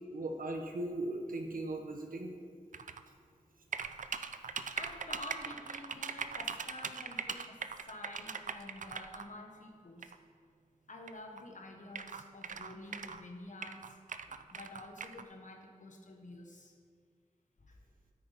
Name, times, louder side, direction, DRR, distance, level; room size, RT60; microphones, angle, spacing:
voice 1, 0.1-2.3 4.3-4.4, right 2 dB, 85° right, 4 dB, 1.1 m, -38 dB
sound 1, 2.7-3.0 3.7-9.2 10.0-10.2 11.1-11.2 11.4-11.5 11.9-13.2 13.6-15.2, right 6 dB, 65° right, 0.4 m, -40 dB
voice 2, 4.8-10.1 10.9-14.0 14.3-16.7 17.6-17.8, left 1 dB, 65° left, 2 dB, 1.4 m, -49 dB
9.5 x 8.6 x 4.2 m, 2.1 s
wide cardioid pair, 55°, 14 cm